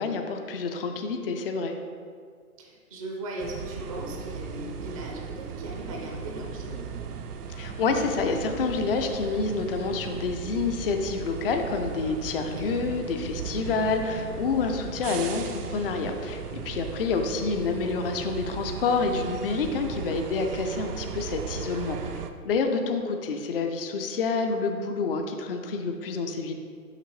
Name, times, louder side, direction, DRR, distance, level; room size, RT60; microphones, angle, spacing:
voice 1, 0.0-1.8 7.5-22.0 22.4-26.5, left 4 dB, 40° left, 5 dB, 0.5 m, -28 dB
voice 2, 2.6-6.9 12.5-12.8 20.0-20.3, right 1 dB, 25° right, 0 dB, 0.4 m, -38 dB
sound 1, 3.4-22.3, right 6 dB, 90° right, 0.6 m, -37 dB
6.5 x 5.7 x 3.1 m, 2.1 s
hypercardioid pair, 140°, 45 cm